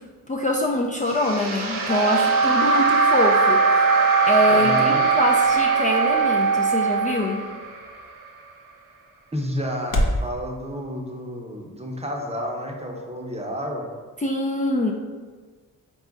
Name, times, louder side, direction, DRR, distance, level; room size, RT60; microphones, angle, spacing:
voice 1, 0.3-7.4 14.2-14.9, left 1 dB, 25° left, -1 dB, 0.4 m, -24 dB
sound 1, 1.1-8.3, right 2 dB, 75° right, 0.7 m, -25 dB
Wind instrument woodwind instrument, 1.9-7.4, right 6 dB, 60° right, 1.0 m, -21 dB
sound 2, 4.0-10.3, equal, 70° left, 0.7 m, -33 dB
voice 2, 4.5-5.0 9.3-13.9, equal, 20° right, 1 dB, 0.7 m, -30 dB
4.1 x 2.4 x 3.9 m, 1.5 s
cardioid pair, 55°, 34 cm